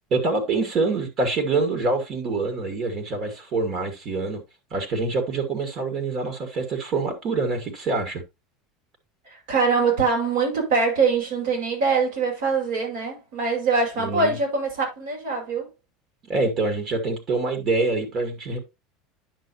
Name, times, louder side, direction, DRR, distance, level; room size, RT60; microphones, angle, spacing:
voice 1, 0.1-4.4 4.7-8.2 14.0-14.4 16.2-18.6, right 3 dB, 40° right, 2.1 m, -25 dB
voice 2, 9.3-15.7, right 4 dB, 80° right, 5.2 m, -23 dB
10.0 x 6.0 x 2.8 m
supercardioid pair, 140°, 0 cm